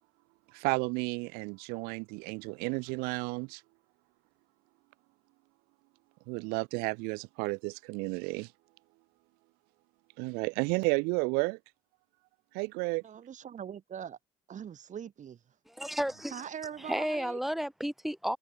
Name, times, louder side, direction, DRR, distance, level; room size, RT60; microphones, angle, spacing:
voice 1, 0.5-3.6 6.3-8.5 10.2-11.6 12.5-13.0, right 30 dB, 90° right, 0.9 m, -32 dB
voice 2, 13.0-14.2 14.5-15.4 16.3-17.4, right 8 dB, 55° right, 3.4 m, -42 dB
voice 3, 15.7-16.4 16.8-18.4, equal, ahead, 1.5 m, -33 dB
supercardioid pair, 70°, 15 cm